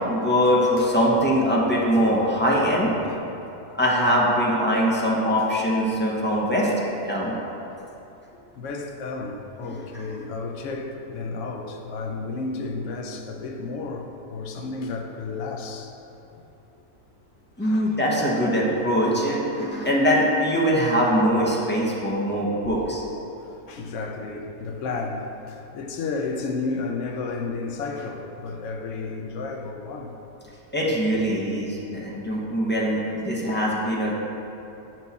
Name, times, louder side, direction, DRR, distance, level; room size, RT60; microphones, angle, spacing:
voice 1, 0.1-2.9 3.8-6.7 7.0-7.3 9.6-9.8 17.6-23.0 30.7-34.1, equal, 15° left, -5 dB, 0.5 m, -22 dB
voice 2, 0.8-1.2 6.6-6.7 8.5-15.9 17.6-17.9 23.5-30.1 33.5-33.7, left 3 dB, 65° left, 3 dB, 0.9 m, -32 dB
6.7 x 4.5 x 4.1 m, 2.9 s
omnidirectional pair, 1.6 m